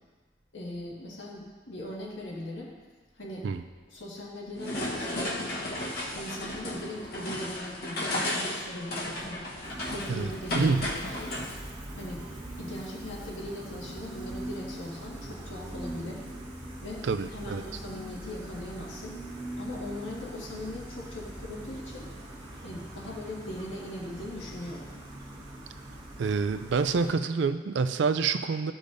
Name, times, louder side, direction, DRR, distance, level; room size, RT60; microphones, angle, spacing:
voice 1, 0.5-2.7 3.1-3.5 3.9-5.5 6.1-9.4 9.9-11.3 11.9-12.3 12.6-16.3 16.8-19.2 19.6-22.1 22.6-24.9, left 1 dB, 85° left, -4 dB, 1.8 m, -40 dB
sound 1, 4.6-11.6, left 1 dB, 50° left, 1.1 m, -34 dB
Gull seagull, 9.6-27.1, right 1 dB, 25° right, 1.3 m, -42 dB
voice 2, 10.1-10.9 17.0-17.6 26.2-28.7, right 4 dB, 65° right, 10 dB, 0.4 m, -27 dB
13.5 x 5.0 x 2.6 m, 1.4 s
head